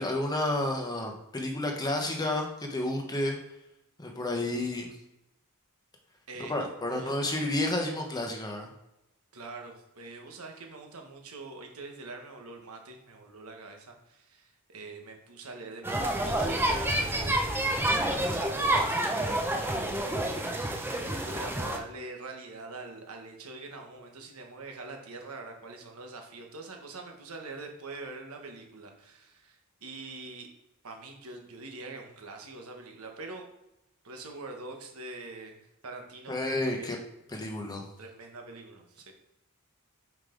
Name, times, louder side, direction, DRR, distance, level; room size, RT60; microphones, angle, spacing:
voice 1, 0.0-3.4 4.0-4.9 6.4-8.7 36.3-37.0 37.3-37.9, left 1 dB, 15° left, 2 dB, 1.0 m, -31 dB
voice 2, 6.3-7.1 9.3-30.5 30.8-33.4 34.0-36.9 38.0-39.1, right 3 dB, 75° right, 3 dB, 1.2 m, -44 dB
sound 1, 15.8-21.8, right 1 dB, 10° right, 0.6 m, -28 dB
5.4 x 4.8 x 3.8 m, 0.90 s
head